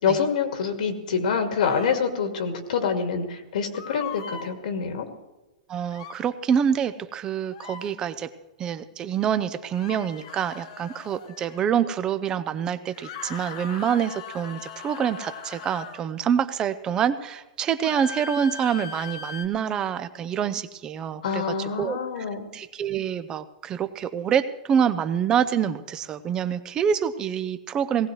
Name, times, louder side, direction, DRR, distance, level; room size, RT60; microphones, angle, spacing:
voice 1, 0.0-5.1 21.2-22.5, left 6 dB, 70° left, 4 dB, 2.0 m, -26 dB
sound 1, 1.6-2.0 3.7-4.5 5.9-6.2 7.5-7.9 9.7-11.6 12.9-16.0 17.8-19.5, left 6 dB, 50° left, 1.3 m, -39 dB
voice 2, 5.7-8.3 8.6-22.2 22.5-28.1, right 8 dB, 15° right, 12 dB, 0.5 m, -26 dB
18.5 x 17.5 x 3.2 m, 1.1 s
supercardioid pair, 170°, 4 cm